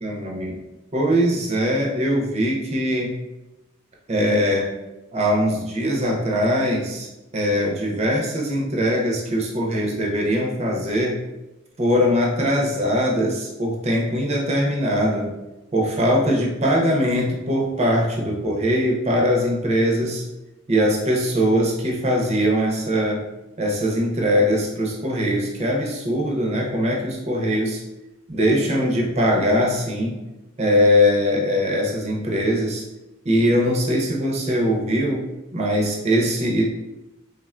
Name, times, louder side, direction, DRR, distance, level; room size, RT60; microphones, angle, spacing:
voice 1, 0.0-0.6 0.9-3.1 4.1-4.7 5.1-7.1 7.3-11.2 11.8-15.3 15.7-20.2 20.7-23.3 23.6-27.8 28.3-30.2 30.6-32.8 33.2-35.3 35.5-36.6, equal, 30° right, -1 dB, 0.5 m, -21 dB
3.4 x 2.1 x 2.4 m, 1.0 s
head